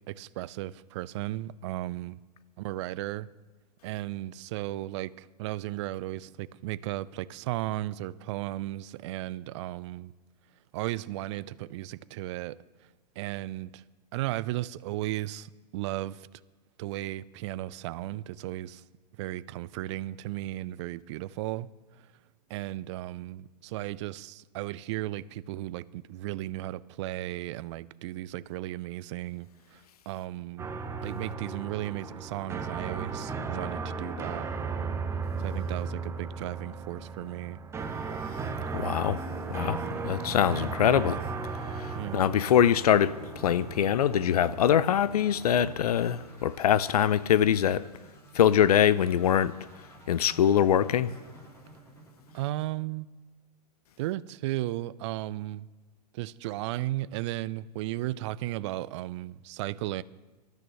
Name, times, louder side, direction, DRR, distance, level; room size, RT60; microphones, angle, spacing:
voice 1, 0.1-2.2 2.6-3.3 3.8-10.1 10.7-12.6 13.2-13.8 14.1-16.3 16.8-18.8 19.2-21.7 22.5-29.8 30.1-30.7 31.0-34.5 35.4-37.6 41.9-42.3 52.3-53.1 54.0-55.7 56.1-60.0, right 16 dB, 45° right, 0.5 m, -35 dB
sound 1, 30.6-46.5, right 4 dB, 15° right, 1.0 m, -36 dB
voice 2, 38.7-39.2 39.5-39.8 40.0-41.2 41.8-43.2 43.4-47.8 48.3-49.5 50.1-51.1, left 9 dB, 65° left, 0.6 m, -23 dB
sound 2, 39.1-53.1, right 3 dB, 15° left, 3.9 m, -51 dB
26.0 x 13.0 x 3.1 m
figure-of-eight pair, 105°, 21 cm